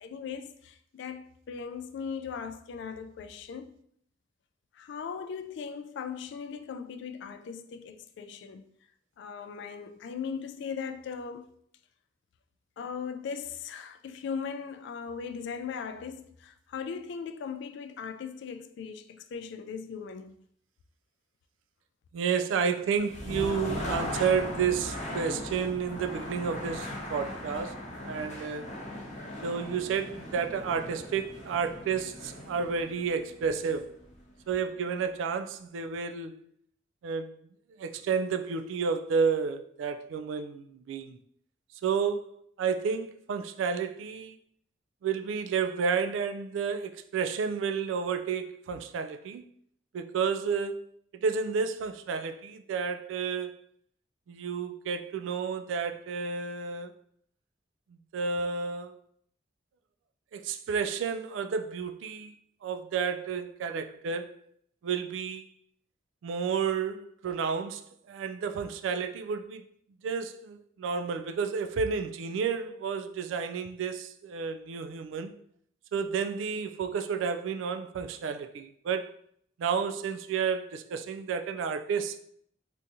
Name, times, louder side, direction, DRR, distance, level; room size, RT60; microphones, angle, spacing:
voice 1, 0.0-3.7 4.7-8.7 9.2-11.5 12.8-20.4, left 6 dB, 65° left, 0.3 m, -39 dB
voice 2, 22.1-28.7 29.4-33.9 34.5-36.4 37.0-37.4 37.8-41.2 41.8-42.3 42.6-44.4 45.0-49.5 49.9-50.8 51.1-53.5 54.3-56.9 58.1-59.0 60.3-62.4 62.6-64.3 64.8-65.5 66.2-69.6 70.0-75.3 75.9-79.1 79.6-82.2, right 6 dB, 85° right, 0.3 m, -31 dB
sound 1, 22.9-34.7, left 1 dB, 40° left, 0.7 m, -39 dB
3.5 x 2.8 x 2.6 m
head